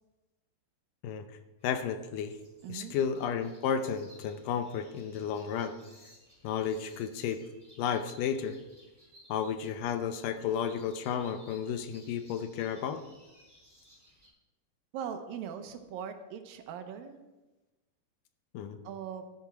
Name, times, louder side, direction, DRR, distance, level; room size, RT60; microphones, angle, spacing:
voice 1, 1.6-2.4 2.7-5.8 6.4-7.4 7.8-8.6 9.3-13.0 18.5-18.8, left 7 dB, 75° left, 8 dB, 2.3 m, -32 dB
sound 1, 1.6-14.3, equal, 5° left, 3.8 m, -60 dB
voice 2, 2.6-3.0 14.9-17.2 18.8-19.2, right 8 dB, 80° right, 6 dB, 2.7 m, -40 dB
12.5 x 11.0 x 4.5 m, 1.1 s
omnidirectional pair, 4.1 m